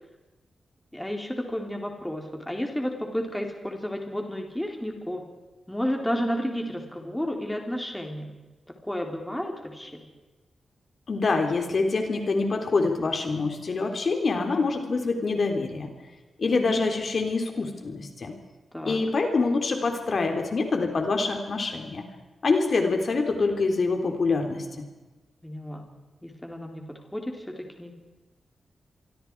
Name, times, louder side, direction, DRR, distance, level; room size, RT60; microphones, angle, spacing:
voice 1, 0.9-5.2 5.7-8.4 8.8-10.1 18.7-19.0 25.4-25.9 26.2-28.0, equal, 5° left, 2 dB, 3.8 m, -32 dB
voice 2, 11.1-15.9 16.4-18.3 18.8-22.0 22.4-24.9, left 3 dB, 50° left, 4 dB, 3.6 m, -25 dB
28.0 x 23.5 x 4.8 m, 1.2 s
wide cardioid pair, 125°, 0 cm